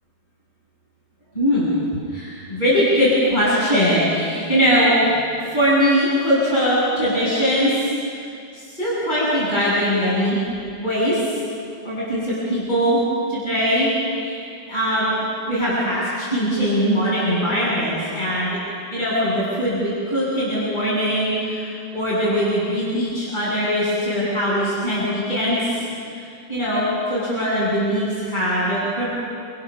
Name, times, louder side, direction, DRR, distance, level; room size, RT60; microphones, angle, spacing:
voice 1, 1.3-1.7 2.1-5.2 5.5-8.3 8.5-10.4 10.8-11.2 11.8-13.0 13.3-13.9 14.1-14.4 14.7-15.1 15.5-18.6 18.9-21.7 21.9-25.7 26.2-26.3 26.5-29.1, equal, 25° left, -8 dB, 8.3 m, -21 dB
27.5 x 27.5 x 6.6 m, 2.4 s
omnidirectional pair, 2.0 m